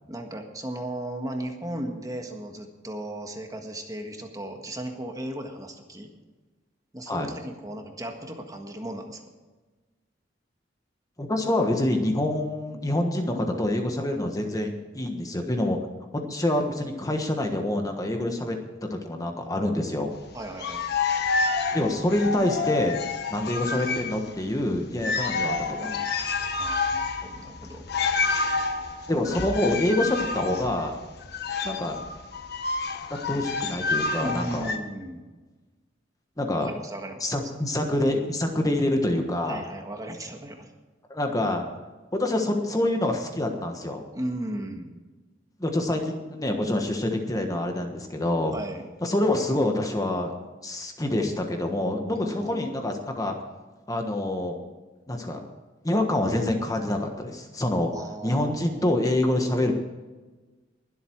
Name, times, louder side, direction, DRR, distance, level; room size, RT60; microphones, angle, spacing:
voice 1, 0.1-6.1 6.9-9.2 20.3-20.8 26.6-27.8 34.2-35.2 36.5-37.3 39.5-40.7 44.1-44.9 48.5-48.8 52.1-52.6 57.9-58.8, right 1 dB, 20° right, 4 dB, 1.6 m, -36 dB
voice 2, 11.2-15.8 16.1-18.6 18.9-20.1 21.7-23.0 23.3-26.0 29.1-30.9 31.6-32.0 33.3-34.7 36.4-36.7 37.2-39.6 41.1-41.7 42.1-44.0 45.6-48.5 49.0-50.3 50.6-53.3 53.9-54.6 55.1-55.5 55.8-57.9 58.2-59.7, left 1 dB, 20° left, 4 dB, 1.4 m, -26 dB
sound 1, 20.4-24.3 24.6-24.7 25.0-34.8, left 4 dB, 60° left, 1.4 m, -29 dB
21.5 x 8.1 x 4.7 m, 1.2 s
head